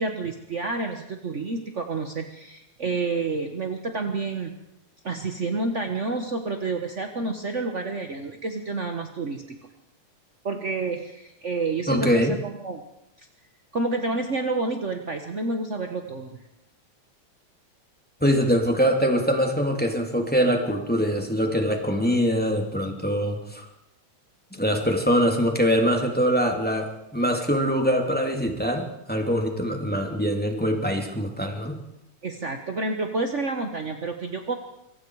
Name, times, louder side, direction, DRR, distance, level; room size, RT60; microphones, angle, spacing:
voice 1, 0.0-4.5 5.0-9.6 10.4-12.8 13.2-13.3 13.7-16.4 32.2-34.5, right 3 dB, 55° right, 5 dB, 0.8 m, -29 dB
voice 2, 11.9-12.4 18.2-23.7 24.5-31.8, equal, 5° left, 2 dB, 2.6 m, -23 dB
26.0 x 24.0 x 4.9 m, 0.83 s
omnidirectional pair, 3.5 m